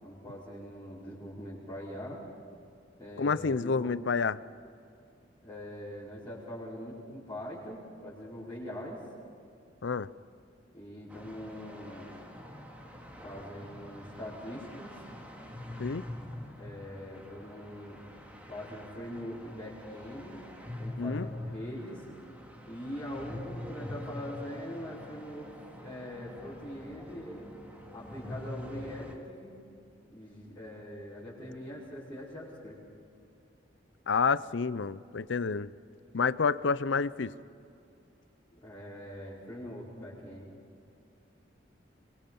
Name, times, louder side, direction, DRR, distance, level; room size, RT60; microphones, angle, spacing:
voice 1, 0.0-2.2 3.0-3.9 5.4-9.0 10.7-12.1 13.2-14.9 16.3-18.0 18.5-20.4 20.8-22.0 22.7-25.5 25.8-27.5 27.9-29.5 30.1-32.8 38.6-40.5, equal, 25° left, -11 dB, 5.0 m, -42 dB
voice 2, 3.2-4.4 9.8-10.1 15.8-16.0 21.0-21.3 34.1-35.7 36.1-37.3, left 5 dB, 85° left, 17 dB, 0.6 m, -29 dB
sound 1, 11.1-29.2, left 1 dB, 10° right, 2.4 m, -45 dB
23.0 x 23.0 x 5.5 m, 2.6 s
head